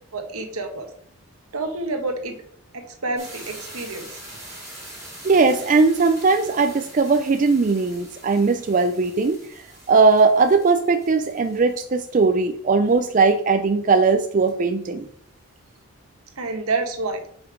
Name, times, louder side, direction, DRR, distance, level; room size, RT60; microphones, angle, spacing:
voice 1, 0.1-0.9 1.5-2.4 2.7-4.2 16.4-17.2, right 3 dB, 80° right, 6 dB, 1.1 m, -28 dB
sound 1, 3.2-13.4 14.0-14.1 14.2-14.6, right 1 dB, 15° right, 2.7 m, -43 dB
voice 2, 5.2-9.4 9.9-15.1, right 4 dB, 35° right, 7 dB, 0.4 m, -19 dB
5.3 x 4.9 x 4.9 m, 0.66 s
head